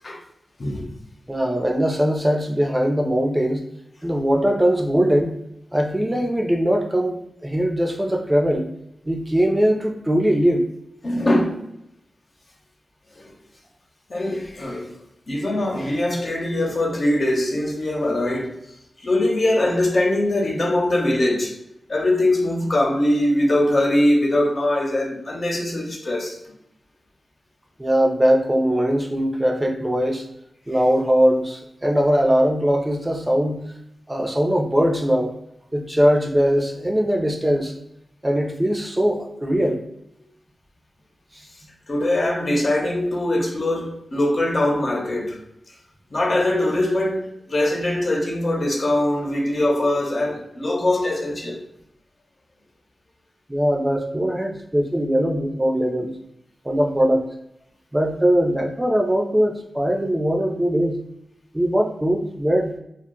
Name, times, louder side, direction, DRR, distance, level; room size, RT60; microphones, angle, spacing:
voice 1, 0.6-0.9 11.0-11.6 13.2-13.3 14.1-15.0 15.3-18.6 19.0-21.6 21.9-26.4 41.9-45.4 46.1-51.6, left 1 dB, 55° left, 0.8 m, -22 dB
voice 2, 1.3-3.6 4.0-5.3 5.7-8.7 9.1-10.6 27.8-30.2 30.7-33.6 34.1-35.3 35.7-37.7 38.2-39.8 53.5-56.1 56.6-57.3 57.9-61.0 61.5-62.7, equal, 20° right, 0.5 m, -20 dB
2.1 x 2.1 x 3.8 m
cardioid pair, 45°, 0 cm